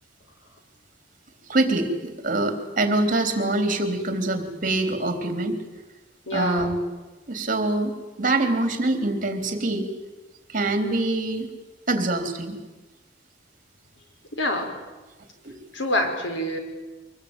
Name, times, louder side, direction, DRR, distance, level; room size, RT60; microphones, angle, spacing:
voice 1, 1.5-5.6 6.3-6.8 7.3-7.9 8.2-9.9 10.5-11.5 11.9-12.6, right 2 dB, 45° right, 7 dB, 3.6 m, -24 dB
voice 2, 6.3-6.8 14.4-14.8 15.7-16.6, left 1 dB, 90° left, 5 dB, 5.0 m, -26 dB
25.5 x 21.0 x 9.0 m, 1.2 s
head